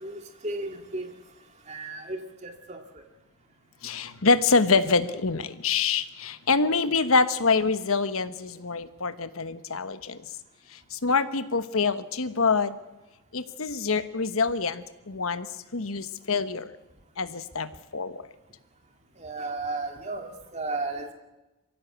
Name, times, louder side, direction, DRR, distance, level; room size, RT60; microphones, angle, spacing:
voice 1, 0.0-1.0 1.7-2.8 19.2-21.1, right 2 dB, 30° right, 4 dB, 2.4 m, -34 dB
voice 2, 3.8-10.2 10.7-12.7 13.3-15.5 15.7-16.7 17.2-18.2, left 4 dB, 80° left, 12 dB, 1.2 m, -25 dB
23.5 x 16.0 x 8.1 m, 1.1 s
head